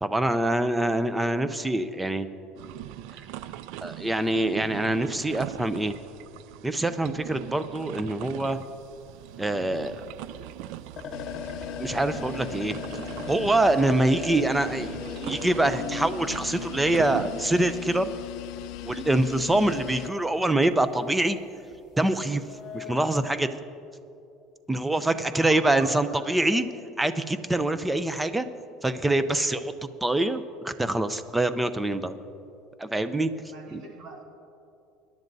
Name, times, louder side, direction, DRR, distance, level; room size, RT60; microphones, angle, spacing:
voice 1, 0.0-2.3 3.8-5.9 6.6-8.6 9.4-10.0 11.8-12.8 13.3-18.1 18.8-21.4 22.0-22.4 22.7-23.6 24.7-26.7 27.0-28.5 28.8-29.7 30.0-32.2 32.8-33.3 33.7-33.8, right 1 dB, 10° right, 12 dB, 0.5 m, -25 dB
sound 1, 2.6-17.8, right 13 dB, 70° right, 0.3 m, -41 dB
sound 2, 8.6-9.4 9.7-9.8 10.2-10.3 10.6-10.7 11.0-17.3 18.4-18.5 18.8-19.1 19.4-19.7 20.2-20.3 20.6-21.0 21.6-23.3, left 5 dB, 35° left, 1.1 m, -39 dB
sound 3, 11.1-20.1, left 15 dB, 65° left, 0.5 m, -39 dB
voice 2, 25.3-26.3 33.5-34.2, right 3 dB, 45° right, 1 dB, 1.9 m, -44 dB
22.0 x 10.5 x 2.7 m, 2.7 s
cardioid pair, 150°, 0 cm